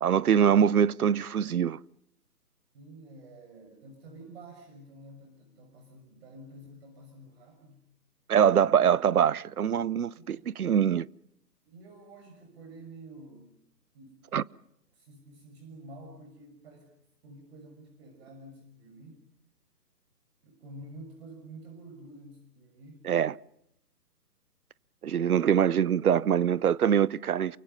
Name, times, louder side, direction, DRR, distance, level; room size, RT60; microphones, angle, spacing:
voice 1, 0.0-1.8 8.3-11.1 14.3-14.4 23.1-23.4 25.0-27.6, right 8 dB, 65° right, 0.9 m, -24 dB
voice 2, 2.7-7.8 10.1-10.6 11.6-13.5 13.9-14.3 14.9-16.9 17.2-19.2 20.4-23.0, right 1 dB, 40° right, 6.3 m, -49 dB
29.0 x 24.5 x 5.6 m
hypercardioid pair, 145°, 48 cm